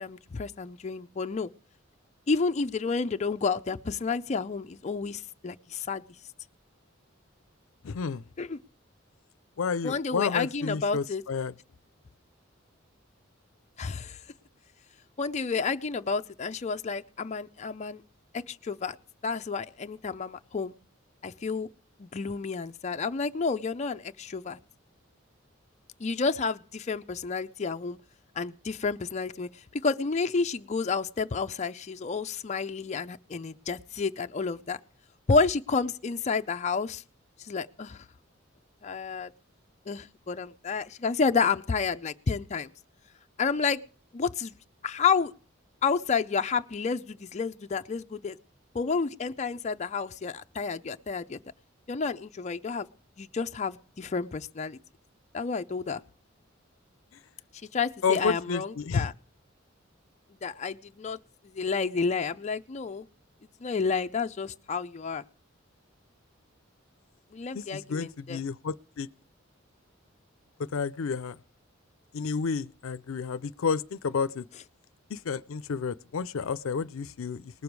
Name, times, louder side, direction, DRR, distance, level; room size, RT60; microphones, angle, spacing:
voice 1, 0.0-1.5 2.3-6.0 8.4-8.6 9.8-11.2 13.8-14.2 15.2-18.0 18.5-19.0 19.2-20.8 21.2-21.7 22.0-24.6 26.0-28.0 28.4-34.8 35.3-37.0 37.4-38.0 38.8-39.3 39.9-42.7 43.4-43.8 44.1-44.6 44.8-45.3 45.8-48.4 48.7-51.4 51.9-52.9 53.2-54.8 55.3-56.0 57.7-59.1 60.4-61.2 61.4-63.0 63.6-65.2 67.3-68.4, left 4 dB, 35° left, 0.5 m, -30 dB
voice 2, 7.8-8.2 9.6-11.5 57.1-57.2 58.0-59.1 67.5-69.1 70.6-71.4 72.1-74.5 75.1-77.6, left 5 dB, 90° left, 0.5 m, -31 dB
19.5 x 6.9 x 4.7 m
head